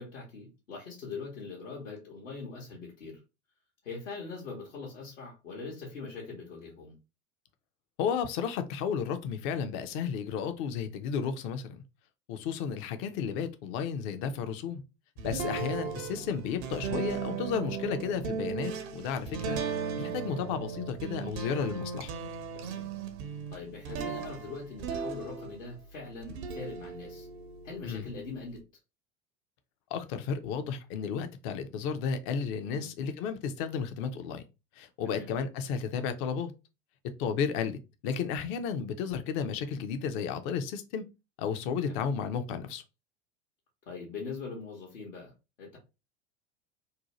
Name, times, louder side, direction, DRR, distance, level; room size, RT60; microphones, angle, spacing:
voice 1, 0.0-3.2 3.8-7.0 15.4-15.7 22.5-22.9 23.5-27.3 27.6-28.6 32.6-32.9 35.0-35.3 41.9-42.1 43.9-45.3 45.6-45.8, left 4 dB, 70° left, 0.9 m, -42 dB
voice 2, 8.0-11.8 12.3-14.8 15.2-19.6 20.0-22.1 27.8-28.1 29.9-34.4 34.8-36.5 37.2-37.8 38.0-41.0 41.4-42.8, left 6 dB, 35° left, 0.4 m, -33 dB
sound 1, 15.2-25.8 26.2-28.6, right 6 dB, 60° right, 0.6 m, -37 dB
2.7 x 2.1 x 2.8 m
figure-of-eight pair, 80°, 39 cm